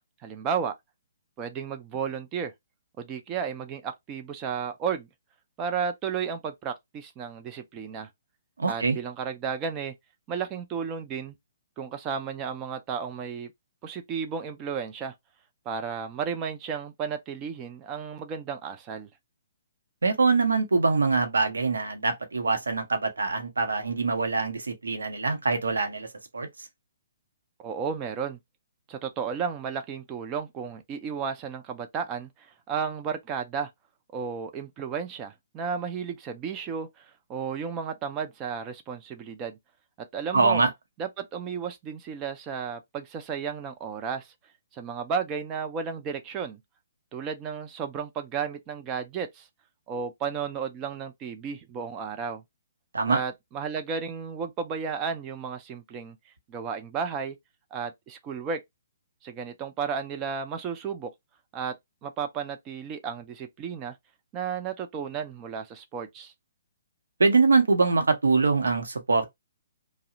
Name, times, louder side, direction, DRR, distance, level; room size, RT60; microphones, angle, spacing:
voice 1, 0.2-0.7 1.4-2.5 3.0-5.1 5.6-8.1 8.7-9.9 10.3-11.4 11.8-13.5 13.8-15.1 15.7-19.1 27.6-28.4 28.9-33.7 34.1-39.6 40.0-40.6 41.0-44.3 44.7-46.6 47.1-49.5 49.9-52.4 53.1-56.2 56.5-57.4 57.7-58.6 59.2-61.1 61.5-61.7 62.0-64.0 64.3-66.3, right 6 dB, 25° right, 0.4 m, -33 dB
voice 2, 8.6-9.0 20.0-26.1 26.3-26.5 40.3-40.7 52.9-53.2 67.2-69.3, right 4 dB, 70° right, 0.7 m, -23 dB
2.7 x 2.0 x 2.6 m
figure-of-eight pair, 130°, 0 cm